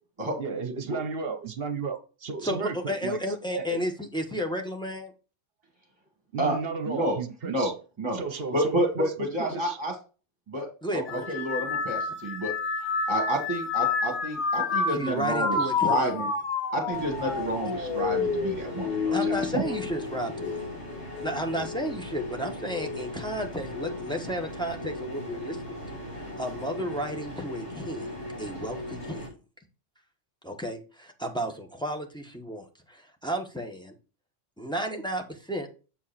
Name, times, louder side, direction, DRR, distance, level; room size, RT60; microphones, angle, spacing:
voice 1, 0.4-3.2 3.5-3.7 6.3-7.7 8.1-9.1 9.4-9.8, right 4 dB, 55° right, 9 dB, 1.1 m, -33 dB
voice 2, 2.4-5.1 10.8-11.2 14.9-16.2 19.1-20.6 21.2-28.1 28.4-29.3 30.4-33.9 34.6-35.7, equal, 5° left, 2 dB, 1.2 m, -33 dB
voice 3, 6.9-7.2 7.4-7.7 8.0-8.2 8.5-9.9 10.5-10.7 10.9-12.5 13.1-16.3 16.7-19.6, right 1 dB, 25° right, 1 dB, 2.2 m, -29 dB
sound 1, 11.1-20.7 21.1-21.7 22.7-23.0, left 5 dB, 45° left, 1.0 m, -29 dB
sound 2, 16.9-29.3, left 1 dB, 65° left, 3.8 m, -38 dB
7.5 x 4.7 x 4.3 m, 0.33 s
omnidirectional pair, 1.2 m